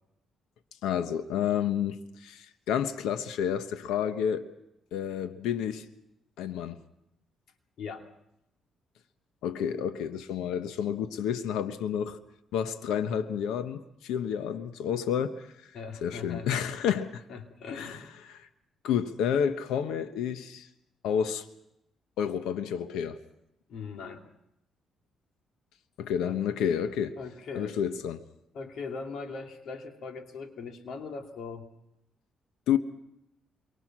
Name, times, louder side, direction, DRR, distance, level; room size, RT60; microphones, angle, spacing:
voice 1, 0.8-4.5 4.9-5.8 6.4-6.8 9.4-12.2 12.5-15.5 16.0-17.2 17.7-18.0 18.3-18.5 18.8-20.7 21.0-21.5 22.2-23.2 26.0-27.2 27.5-28.2 32.7-32.8, left 8 dB, 90° left, 1.1 m, -30 dB
voice 2, 7.8-8.1 15.7-17.0 17.3-18.1 23.7-24.2 26.2-26.4 27.2-27.8 28.5-31.7, left 5 dB, 70° left, 2.8 m, -40 dB
27.5 x 24.0 x 6.2 m
cardioid pair, 90°, 0 cm